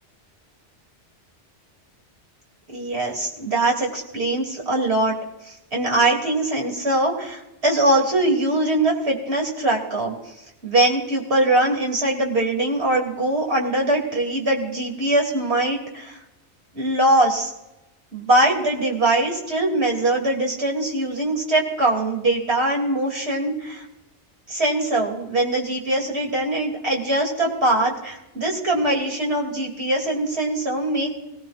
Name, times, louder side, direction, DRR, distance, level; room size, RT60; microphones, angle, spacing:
voice 1, 2.7-5.1 5.7-10.1 10.6-16.2 16.7-17.5 18.1-23.8 24.5-31.1, right 1 dB, 65° right, -1 dB, 3.4 m, -22 dB
21.0 x 17.5 x 2.6 m, 0.91 s
omnidirectional pair, 1.2 m